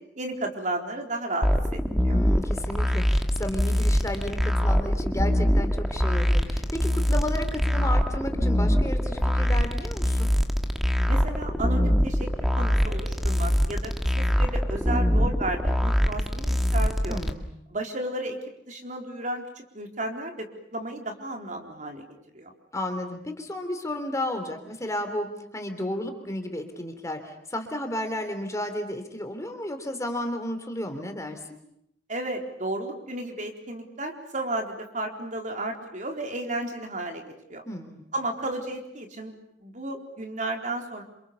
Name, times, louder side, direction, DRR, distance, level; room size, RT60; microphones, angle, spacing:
voice 1, 0.0-2.2 11.1-12.3 12.6-17.2 17.7-18.4 18.7-22.0 22.3-22.5 32.1-37.6 38.1-41.0, right 1 dB, 45° right, 3 dB, 4.2 m, -33 dB
sound 1, 1.4-17.3, equal, ahead, 2.2 m, -24 dB
voice 2, 2.1-10.3 17.1-17.5 22.7-31.4 37.6-38.0, left 1 dB, 20° left, 6 dB, 3.4 m, -33 dB
29.5 x 27.5 x 7.1 m, 0.73 s
head